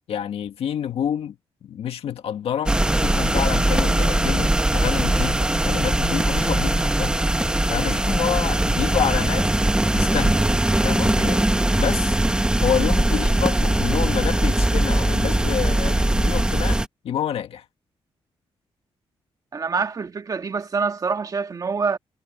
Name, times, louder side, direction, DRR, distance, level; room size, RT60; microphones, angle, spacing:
voice 1, 0.1-1.3 1.6-7.2 7.7-9.7 9.9-10.4 10.8-11.4 11.7-12.2 12.6-17.6, left 9 dB, 75° left, 1.7 m, -28 dB
sound 1, 2.7-16.9, right 1 dB, 10° right, 1.0 m, -20 dB
voice 2, 19.5-22.0, right 5 dB, 35° right, 1.6 m, -25 dB
cardioid pair, 115°, 10 cm